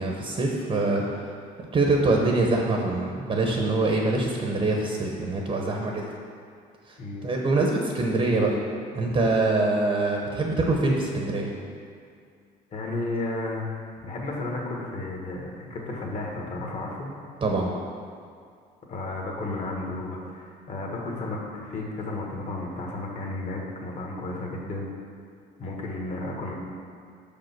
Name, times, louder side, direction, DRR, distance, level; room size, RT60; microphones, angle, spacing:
voice 1, 0.0-1.3 1.7-6.1 6.9-8.6 8.9-11.5 17.4-17.7, right 2 dB, 35° right, 0 dB, 0.9 m, -24 dB
voice 2, 12.7-13.6 14.0-17.1 18.9-24.9 25.6-26.5, left 2 dB, 45° left, -1 dB, 1.5 m, -33 dB
5.7 x 5.2 x 5.9 m, 2.3 s
cardioid pair, 110°, 17 cm